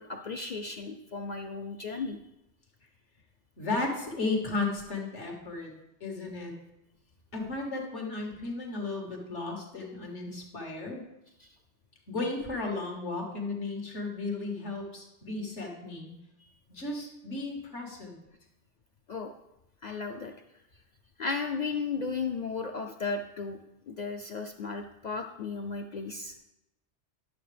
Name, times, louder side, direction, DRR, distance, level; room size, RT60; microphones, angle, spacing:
voice 1, 0.0-2.2 11.4-11.5 19.1-19.3 19.8-20.3 21.2-23.6 23.9-26.4, left 4 dB, 55° left, 4 dB, 0.5 m, -35 dB
voice 2, 3.6-5.7 6.0-6.5 7.3-11.0 12.1-16.1 16.7-18.2, left 3 dB, 80° left, 1 dB, 2.0 m, -34 dB
11.5 x 6.8 x 3.3 m, 0.87 s
omnidirectional pair, 1.2 m